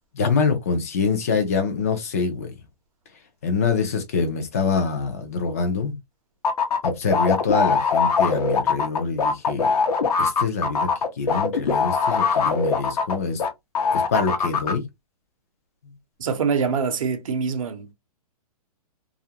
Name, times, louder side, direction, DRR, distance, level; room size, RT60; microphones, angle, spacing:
voice 1, 0.1-2.5 3.4-6.0 6.8-9.7 10.2-10.9 11.2-13.4 13.9-14.8, left 5 dB, 25° left, 0.4 m, -25 dB
sound 1, 6.4-13.5 13.8-14.7, left 5 dB, 80° left, 0.9 m, -21 dB
voice 2, 16.2-17.9, right 5 dB, 60° right, 0.7 m, -24 dB
2.4 x 2.1 x 2.7 m
hypercardioid pair, 175°, 20 cm